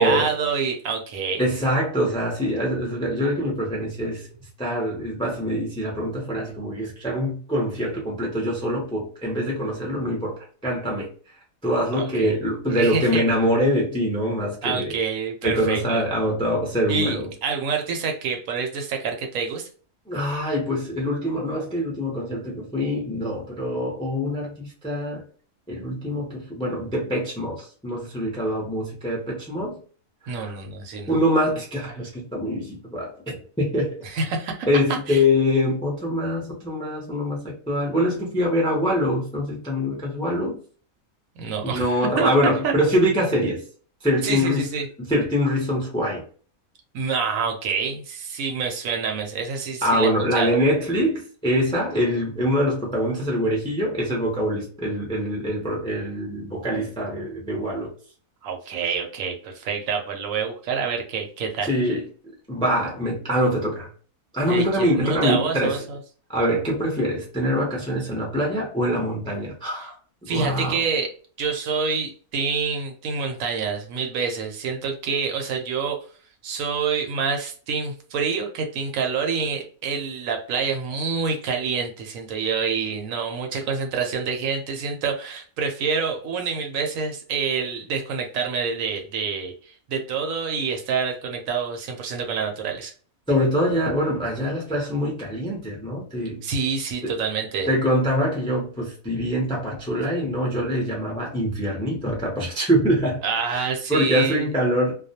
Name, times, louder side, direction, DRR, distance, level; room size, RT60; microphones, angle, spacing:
voice 1, 0.0-1.4 11.9-12.3 12.7-13.2 14.6-16.0 16.9-19.7 30.3-31.1 34.0-35.2 41.4-42.3 42.6-42.7 44.2-44.9 46.9-50.1 50.3-50.5 58.4-61.9 64.5-66.0 70.3-71.1 71.4-76.0 76.4-92.9 96.4-97.7 103.2-104.5, right 5 dB, 75° right, 0.9 m, -27 dB
voice 2, 1.4-4.3 4.6-11.1 11.6-14.9 15.4-17.3 20.1-25.2 25.7-29.8 30.2-30.6 31.1-34.0 34.7-40.6 41.6-43.6 44.0-44.7 45.0-46.2 49.8-57.9 61.6-62.0 62.5-63.9 64.3-65.8 66.3-69.9 70.3-70.8 93.3-96.4 97.0-97.1 97.7-103.2 103.5-104.9, equal, 5° left, 0.4 m, -24 dB
2.4 x 2.1 x 2.7 m
omnidirectional pair, 1.5 m